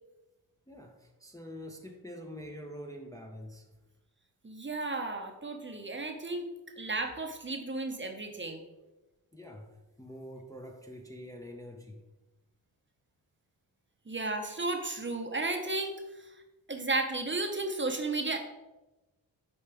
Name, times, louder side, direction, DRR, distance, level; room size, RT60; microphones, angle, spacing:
voice 1, 0.7-3.7 9.3-12.1, equal, 10° left, 2 dB, 0.7 m, -45 dB
voice 2, 4.4-8.6 14.1-15.9 16.7-18.4, right 2 dB, 25° right, 4 dB, 0.8 m, -33 dB
7.0 x 4.3 x 3.4 m, 1.0 s
cardioid pair, 65°, 45 cm